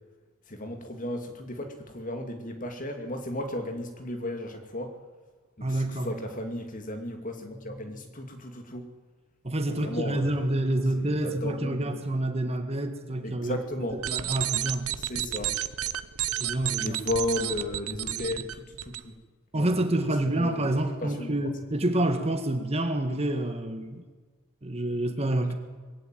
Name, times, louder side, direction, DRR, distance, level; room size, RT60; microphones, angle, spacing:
voice 1, 0.5-5.0 5.6-8.9 9.7-10.5 11.0-12.0 13.2-14.0 15.0-15.5 16.8-19.1 19.5-19.7 20.2-20.7 21.0-21.3, left 1 dB, 35° left, 6 dB, 2.5 m, -34 dB
voice 2, 5.6-6.1 9.4-13.6 14.1-14.9 16.4-17.0 19.5-24.0 24.6-25.5, right 1 dB, 30° right, 7 dB, 1.7 m, -28 dB
sound 1, 13.9-19.0, right 12 dB, 80° right, 0.9 m, -31 dB
21.5 x 16.5 x 9.2 m, 1.4 s
head